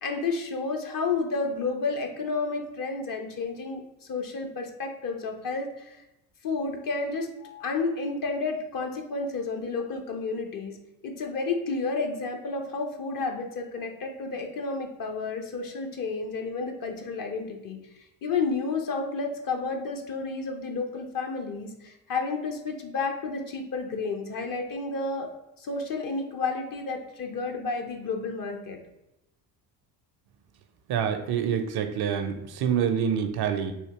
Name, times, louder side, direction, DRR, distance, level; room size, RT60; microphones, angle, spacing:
voice 1, 0.0-3.8 4.1-6.0 6.4-10.7 11.0-17.8 18.2-25.3 25.6-28.8, left 4 dB, 45° left, 4 dB, 0.7 m, -31 dB
voice 2, 30.9-33.7, right 8 dB, 50° right, 7 dB, 0.5 m, -26 dB
3.5 x 2.7 x 2.8 m, 0.91 s
supercardioid pair, 65°, 49 cm